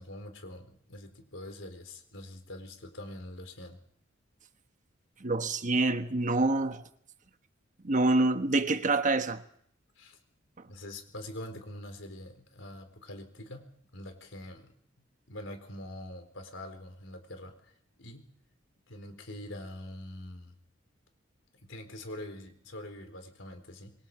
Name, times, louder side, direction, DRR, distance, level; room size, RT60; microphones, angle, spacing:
voice 1, 0.0-3.8 10.0-10.2 10.7-14.7 15.3-18.3 18.9-20.5 21.6-23.9, left 1 dB, 75° left, 4.3 m, -44 dB
voice 2, 5.2-6.8 7.8-9.4, right 2 dB, 40° right, 1.2 m, -26 dB
27.0 x 23.0 x 4.9 m
head